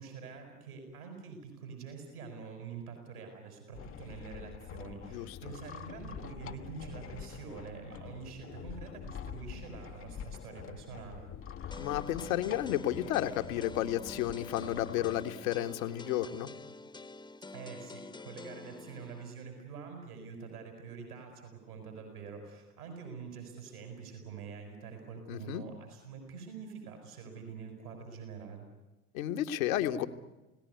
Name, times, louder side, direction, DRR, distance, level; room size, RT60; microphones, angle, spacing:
voice 1, 0.0-11.2 17.5-28.7, right 5 dB, 75° right, 4 dB, 6.3 m, -46 dB
sound 1, 3.7-15.2, left 8 dB, 30° left, 1.0 m, -46 dB
sound 2, 11.7-19.3, left 3 dB, 10° left, 1.2 m, -48 dB
voice 2, 11.8-16.5 25.3-25.6 29.1-30.1, left 12 dB, 65° left, 8 dB, 1.7 m, -32 dB
28.5 x 18.0 x 9.6 m, 1.1 s
figure-of-eight pair, 65°, 45 cm